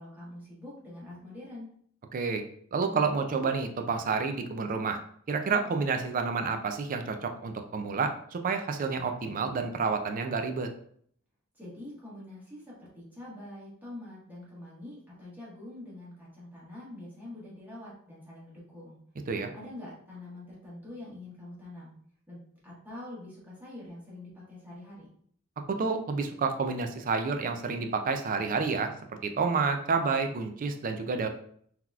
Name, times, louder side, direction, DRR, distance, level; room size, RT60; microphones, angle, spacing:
voice 1, 0.0-1.7 11.5-19.0 19.5-21.9 22.3-25.1, left 1 dB, 10° right, -8 dB, 1.4 m, -45 dB
voice 2, 2.1-2.4 2.7-5.0 5.3-10.7 19.3-19.5 25.7-28.9 29.2-31.3, right 4 dB, 40° right, 6 dB, 0.4 m, -29 dB
3.8 x 2.9 x 2.4 m, 0.62 s
head